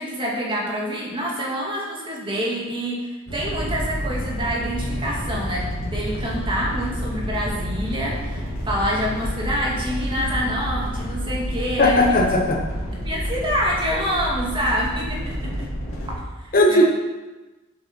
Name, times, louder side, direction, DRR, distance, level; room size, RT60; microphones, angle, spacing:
voice 1, 0.0-12.0 13.0-15.5 16.4-16.9, equal, 25° right, -3 dB, 2.2 m, -26 dB
sound 1, 3.3-16.1, equal, 75° left, 2.7 m, -29 dB
voice 2, 11.8-12.6 16.5-16.9, left 1 dB, 45° left, 2 dB, 1.1 m, -16 dB
8.0 x 6.8 x 6.0 m, 1.2 s
head